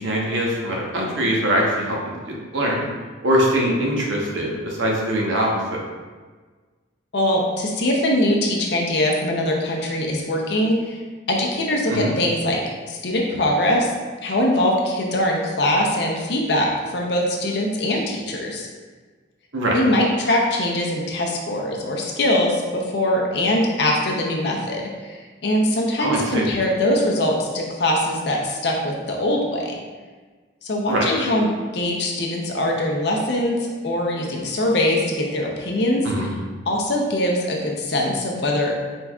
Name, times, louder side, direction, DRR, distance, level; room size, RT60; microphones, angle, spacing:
voice 1, 0.0-2.9 3.2-5.8 11.9-12.1 19.5-19.8 26.0-26.5 30.9-31.1 36.0-36.3, equal, 80° right, -2 dB, 0.9 m, -22 dB
voice 2, 7.1-11.0 11.3-12.6 12.9-13.9 14.2-18.7 19.7-29.8 30.6-33.6 33.8-36.0 36.7-38.8, left 1 dB, 55° left, -1 dB, 0.6 m, -22 dB
4.5 x 3.9 x 2.3 m, 1.4 s
head